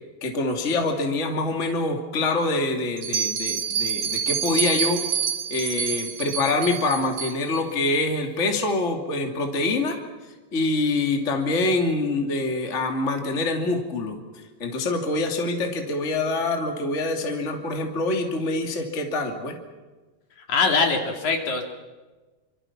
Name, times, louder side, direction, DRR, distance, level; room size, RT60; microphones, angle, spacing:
voice 1, 0.2-10.0 10.5-14.2 14.6-19.6, left 2 dB, 25° left, 3 dB, 2.5 m, -25 dB
Bell, 3.0-7.6, right 7 dB, 55° right, 1.8 m, -27 dB
voice 2, 20.5-21.6, left 4 dB, 60° left, 3 dB, 3.9 m, -22 dB
28.5 x 26.0 x 6.0 m, 1.3 s
omnidirectional pair, 4.0 m